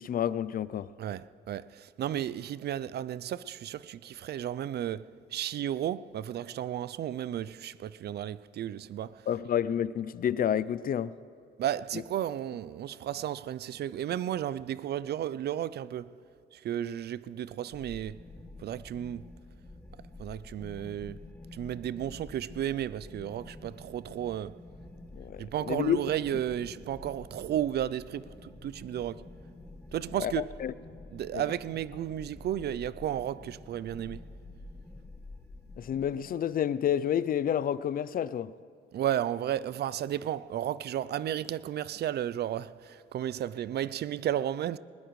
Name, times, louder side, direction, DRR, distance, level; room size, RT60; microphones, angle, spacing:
voice 1, 0.0-0.9 9.3-11.1 25.1-26.0 30.2-30.3 30.6-30.7 31.3-31.4 35.8-38.5, left 9 dB, 45° left, 0.4 m, -29 dB
voice 2, 1.0-9.3 11.6-16.1 16.5-18.2 18.6-19.3 20.2-21.2 21.5-24.6 25.4-29.3 29.9-30.5 31.1-34.3 38.9-44.8, right 11 dB, 55° right, 0.4 m, -33 dB
sound 1, 17.7-36.3, left 2 dB, 10° left, 1.3 m, -49 dB
20.5 x 20.0 x 3.2 m
cardioid pair, 90°, 20 cm